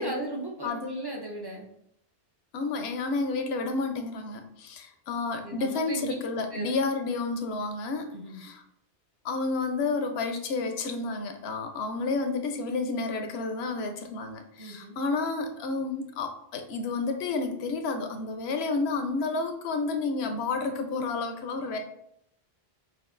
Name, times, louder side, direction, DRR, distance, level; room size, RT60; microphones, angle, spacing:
voice 1, 0.0-1.7 5.4-6.1 6.5-6.7 8.1-8.4 14.6-15.0, right 1 dB, 30° right, 0 dB, 0.5 m, -36 dB
voice 2, 0.6-0.9 2.5-8.6 9.2-21.8, left 3 dB, 80° left, 6 dB, 0.8 m, -30 dB
6.2 x 2.5 x 2.5 m, 0.77 s
omnidirectional pair, 1.0 m